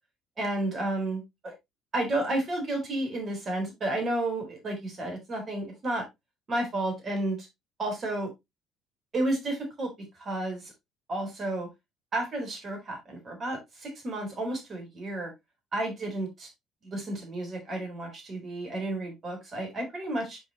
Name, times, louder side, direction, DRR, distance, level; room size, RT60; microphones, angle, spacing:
voice 1, 0.4-1.5 1.9-6.0 6.5-7.5 7.8-8.3 9.1-9.9 10.2-10.7 11.1-11.7 12.1-15.3 15.7-16.5 16.8-20.4, right 1 dB, 40° right, 3 dB, 3.9 m, -31 dB
8.0 x 5.5 x 3.0 m, 0.19 s
figure-of-eight pair, 50°, 0 cm